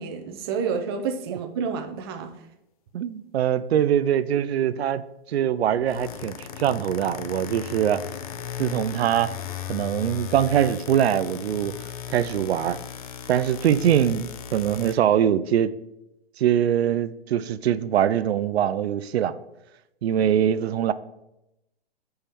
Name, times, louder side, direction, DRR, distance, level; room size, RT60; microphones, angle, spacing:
voice 1, 0.0-2.3, right 6 dB, 25° right, 0.4 m, -29 dB
voice 2, 2.9-8.0 8.6-9.3 9.7-11.7 12.1-12.8 13.3-15.7 16.4-19.3 20.0-20.9, right 10 dB, 90° right, 0.5 m, -23 dB
sound 1, 5.6-15.0, left 10 dB, 40° left, 0.4 m, -37 dB
7.0 x 4.4 x 3.4 m
hypercardioid pair, 155°, 31 cm